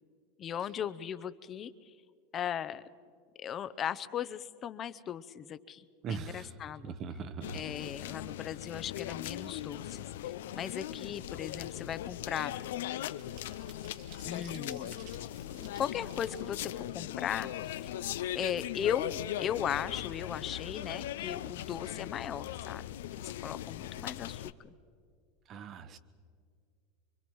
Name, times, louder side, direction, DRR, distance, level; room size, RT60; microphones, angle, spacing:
voice 1, 0.4-1.9 2.3-2.8 3.4-6.9 7.5-12.5 14.2-15.1 15.5-17.9 18.3-22.9 23.1-24.5, left 9 dB, 35° left, 14 dB, 0.7 m, -37 dB
voice 2, 6.0-6.5 6.8-7.6 25.5-26.0, right 5 dB, 40° right, 13 dB, 1.1 m, -40 dB
sound 1, 7.4-24.5, left 12 dB, 80° left, 0.6 m, -39 dB
sound 2, 12.5-17.9 18.3-18.4 18.7-19.6 19.9-20.1 20.4-20.7, right 6 dB, 65° right, 3.0 m, -58 dB
24.5 x 24.0 x 4.7 m, 2.2 s
supercardioid pair, 115°, 0 cm